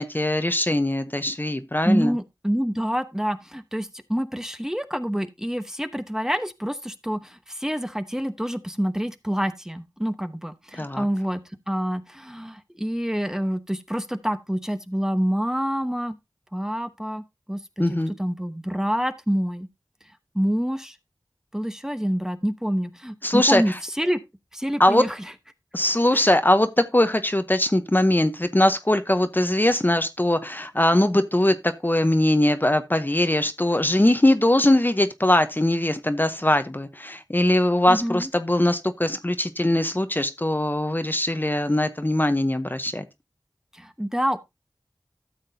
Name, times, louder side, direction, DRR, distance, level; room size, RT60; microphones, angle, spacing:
voice 1, 0.0-2.1 10.8-11.0 17.8-18.1 23.2-23.6 24.8-25.1 25.7-43.1, left 1 dB, 25° left, 0.8 m, -21 dB
voice 2, 1.8-16.2 16.5-19.7 20.3-21.0 21.5-24.2 24.5-25.3 26.1-26.3 37.9-38.3 43.7-44.4, equal, 5° right, 1.0 m, -27 dB
13.0 x 7.5 x 2.7 m
wide cardioid pair, 45°, 8 cm